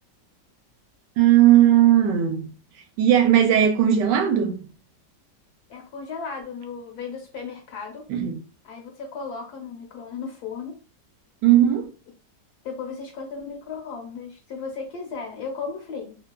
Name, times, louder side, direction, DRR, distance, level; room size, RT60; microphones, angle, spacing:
voice 1, 1.2-2.5 3.0-4.7 8.1-8.4 11.4-11.9, right 11 dB, 80° right, 1.2 m, -17 dB
voice 2, 5.7-8.1 8.6-10.8 12.6-16.2, left 5 dB, 70° left, 1.1 m, -35 dB
2.9 x 2.2 x 2.2 m
omnidirectional pair, 1.9 m